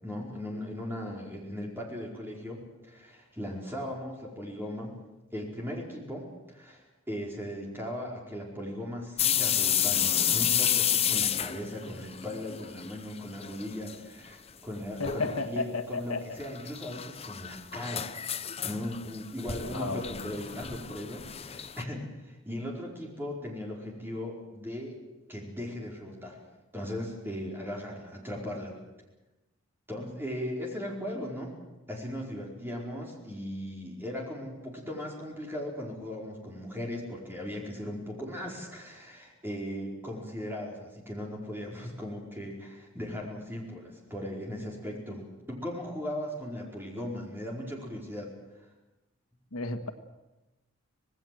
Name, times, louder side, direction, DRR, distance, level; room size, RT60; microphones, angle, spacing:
voice 1, 0.0-5.0 5.3-18.2 18.6-25.0 25.3-26.4 26.7-28.8 29.9-31.5 31.9-48.3, left 1 dB, 10° right, -2 dB, 4.8 m, -38 dB
sound 1, 9.2-13.0 13.3-14.0 14.3-14.4 15.0-15.4 16.4-21.8, left 9 dB, 30° left, 0.7 m, -30 dB
voice 2, 15.0-16.3 19.6-20.3 49.5-49.9, left 3 dB, 85° left, 8 dB, 1.7 m, -33 dB
26.0 x 18.5 x 7.8 m, 1.0 s
head